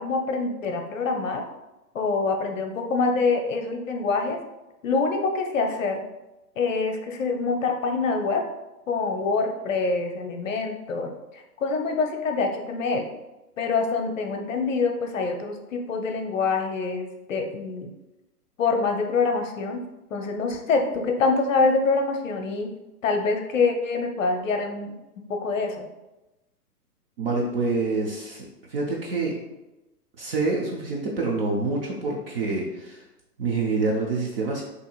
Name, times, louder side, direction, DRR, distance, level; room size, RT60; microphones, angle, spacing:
voice 1, 0.0-1.4 1.9-4.4 4.8-6.0 6.6-8.4 8.9-11.1 11.6-13.1 13.6-17.9 18.6-19.8 20.1-22.7 23.0-24.9 25.3-25.9, left 4 dB, 55° left, 4 dB, 0.6 m, -25 dB
voice 2, 27.2-29.3 30.2-33.0 33.4-34.6, right 3 dB, 40° right, -2 dB, 0.6 m, -27 dB
5.2 x 2.9 x 2.4 m, 1.0 s
figure-of-eight pair, 115°, 48 cm